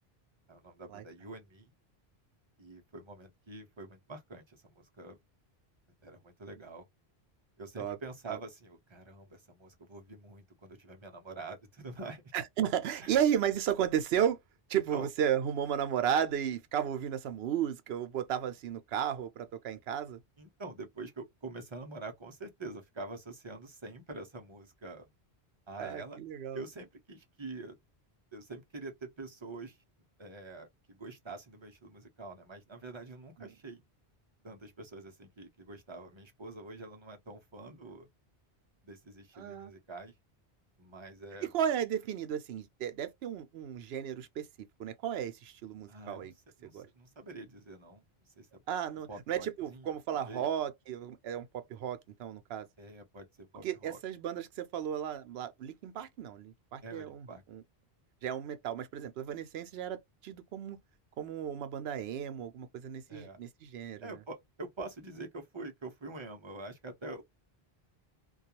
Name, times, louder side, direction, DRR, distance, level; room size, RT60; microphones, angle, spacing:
voice 1, 0.5-1.7 2.6-5.2 6.0-6.9 7.6-12.2 13.0-13.1 14.9-15.1 20.4-25.1 25.7-26.2 26.5-27.8 28.3-29.8 30.2-33.8 34.4-38.1 38.8-40.1 40.8-41.5 45.9-46.3 46.6-48.0 48.4-48.5 49.1-50.5 52.8-54.0 56.8-57.4 63.1-63.4 64.0-67.2, right 3 dB, 35° right, 0.5 m, -46 dB
voice 2, 12.3-14.4 14.7-20.2 25.8-26.6 33.4-33.5 39.4-39.7 41.5-44.5 44.8-46.3 46.7-46.9 48.7-52.7 53.6-57.6 58.2-60.8 61.2-64.2, right 9 dB, 75° right, 0.8 m, -34 dB
2.3 x 2.3 x 2.8 m
omnidirectional pair, 1.1 m